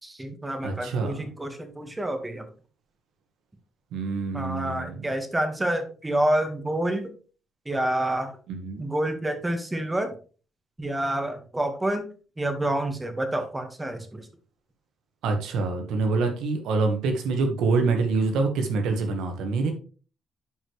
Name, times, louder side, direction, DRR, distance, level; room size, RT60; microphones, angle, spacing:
voice 1, 0.0-2.4 4.3-7.1 7.6-8.3 8.8-10.1 10.8-12.0 12.4-14.3, right 1 dB, 15° right, 7 dB, 1.7 m, -28 dB
voice 2, 0.6-1.2 3.9-5.1 8.5-8.8 15.2-19.7, right 3 dB, 85° right, 5 dB, 1.6 m, -26 dB
11.0 x 5.0 x 3.3 m, 0.37 s
cardioid pair, 90°, 0 cm